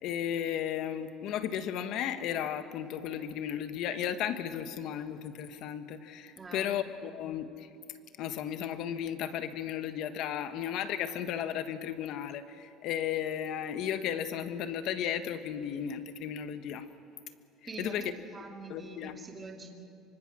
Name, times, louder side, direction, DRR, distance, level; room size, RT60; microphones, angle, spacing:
voice 1, 0.0-7.7 8.2-16.9 17.8-18.1 18.7-19.2, left 9 dB, 60° left, 9 dB, 1.4 m, -34 dB
voice 2, 6.4-6.8 17.6-19.7, right 3 dB, 20° right, 1 dB, 2.4 m, -45 dB
25.5 x 24.5 x 6.3 m, 2.5 s
cardioid pair, 140°, 0 cm